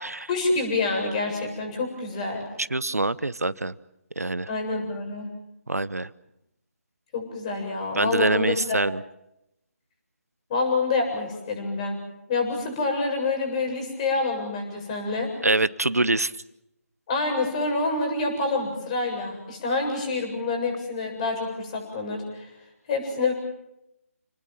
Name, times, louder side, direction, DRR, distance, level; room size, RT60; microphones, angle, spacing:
voice 1, 0.3-2.5 4.5-5.3 7.1-8.8 10.5-12.0 12.3-15.3 17.1-22.5 22.9-23.3, left 3 dB, 25° left, 3 dB, 7.5 m, -27 dB
voice 2, 2.6-3.7 4.2-4.5 5.7-6.1 8.0-9.0 15.4-16.3, right 2 dB, 85° right, 17 dB, 1.0 m, -24 dB
29.5 x 19.5 x 7.6 m, 0.85 s
figure-of-eight pair, 155°, 8 cm